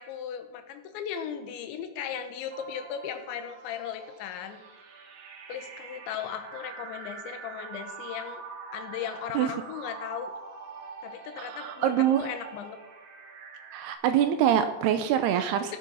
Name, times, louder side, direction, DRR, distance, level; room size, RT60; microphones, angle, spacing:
voice 1, 0.0-4.6 5.5-8.4 8.7-10.3 11.0-12.8 15.7-15.8, left 8 dB, 85° left, 7 dB, 3.4 m, -37 dB
sound 1, 2.5-13.9, right 4 dB, 60° right, 2.8 m, -44 dB
voice 2, 11.4-12.3 13.7-15.8, right 10 dB, 80° right, 9 dB, 2.5 m, -25 dB
17.0 x 7.7 x 5.6 m, 1.0 s
omnidirectional pair, 5.1 m